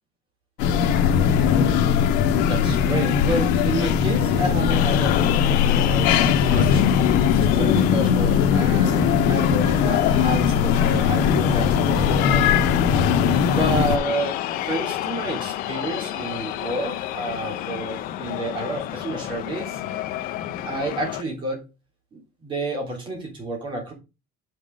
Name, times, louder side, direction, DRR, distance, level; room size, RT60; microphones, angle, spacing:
sound 1, 0.6-14.0, left 7 dB, 90° left, 1.2 m, -20 dB
voice 1, 2.5-6.8 7.3-12.5 13.4-19.8 20.6-21.6 22.1-23.9, right 1 dB, 30° right, 0 dB, 3.4 m, -30 dB
sound 2, 4.7-21.2, left 10 dB, 60° left, 0.8 m, -27 dB
6.4 x 6.0 x 5.2 m, 0.27 s
cardioid pair, 175°, 17 cm